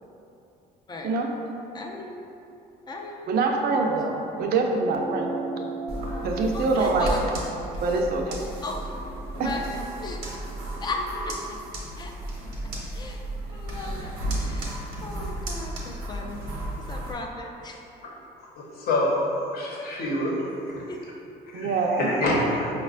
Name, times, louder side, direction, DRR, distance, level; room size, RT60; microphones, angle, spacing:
voice 1, 1.0-1.3 3.3-5.3 6.2-7.1 7.8-8.4 9.4-9.6 21.5-22.1, right 3 dB, 65° right, 1 dB, 0.5 m, -24 dB
voice 2, 1.7-2.2 2.9-3.4 6.5-7.3 8.6-8.8 9.4-10.3 10.8-11.6 12.0-12.1 12.9-13.2 13.5-14.1 14.4-16.5 16.8-17.8 20.9-21.0, left 2 dB, 25° left, 1 dB, 0.3 m, -36 dB
sound 1, 4.8-9.6, right 3 dB, 15° right, 0.6 m, -38 dB
sound 2, 5.9-17.1, right 1 dB, 85° right, 0.8 m, -34 dB
voice 3, 18.6-19.1 19.5-20.4 20.7-20.8 21.5-22.7, left 1 dB, 65° left, -4 dB, 0.8 m, -26 dB
5.1 x 2.2 x 2.4 m, 2.7 s
cardioid pair, 110°, 17 cm